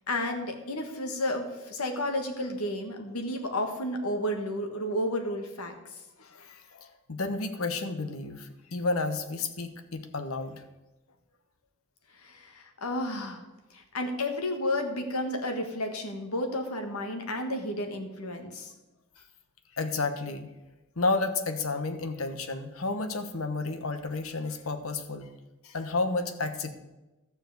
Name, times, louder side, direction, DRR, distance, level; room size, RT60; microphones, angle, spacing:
voice 1, 0.0-5.7 12.1-13.4 13.7-18.7, left 1 dB, 90° left, 5 dB, 1.7 m, -32 dB
voice 2, 6.2-10.6 19.7-20.5 21.0-25.3 25.6-26.7, left 3 dB, 70° left, 8 dB, 1.1 m, -31 dB
13.0 x 4.9 x 7.9 m, 1.0 s
head